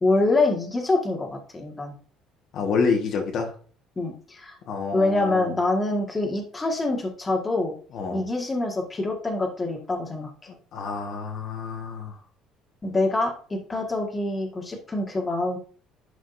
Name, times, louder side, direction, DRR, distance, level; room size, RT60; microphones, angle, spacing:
voice 1, 0.0-1.9 3.9-4.6 4.9-7.7 8.1-10.5 12.8-15.6, left 2 dB, 20° left, 1 dB, 1.7 m, -25 dB
voice 2, 2.5-3.5 4.7-5.5 7.9-8.2 10.7-12.2, left 5 dB, 55° left, 2 dB, 1.5 m, -28 dB
11.0 x 5.0 x 2.6 m, 0.42 s
cardioid pair, 135°, 0 cm